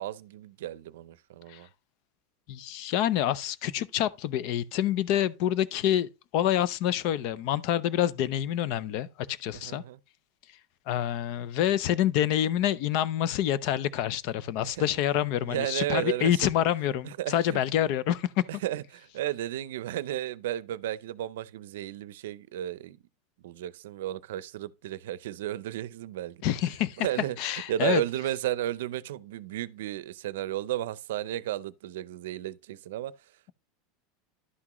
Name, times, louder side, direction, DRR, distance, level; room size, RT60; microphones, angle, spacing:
voice 1, 0.0-1.7 9.6-10.0 14.6-14.9 15.4-16.3 17.0-17.6 18.6-23.0 23.4-26.4 27.0-27.4 27.7-33.1, right 13 dB, 85° right, 0.5 m, -33 dB
voice 2, 2.5-9.8 10.9-18.3 26.4-27.1 27.4-28.0, left 11 dB, 50° left, 0.5 m, -27 dB
11.0 x 6.0 x 3.0 m
supercardioid pair, 155°, 0 cm